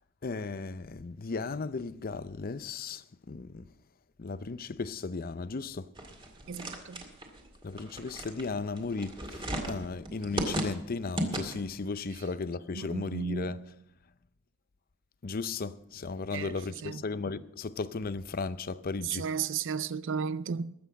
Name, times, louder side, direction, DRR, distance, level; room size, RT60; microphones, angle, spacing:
voice 1, 0.2-3.0 3.3-3.6 4.2-5.9 7.6-13.6 15.2-19.3, left 4 dB, 45° left, 0.6 m, -35 dB
sound 1, 6.0-11.8, right 1 dB, 25° right, 2.2 m, -36 dB
voice 2, 6.5-7.1 12.2-12.3 12.7-13.7 16.3-17.0 19.0-20.7, right 6 dB, 60° right, 0.5 m, -34 dB
20.5 x 7.9 x 5.2 m
head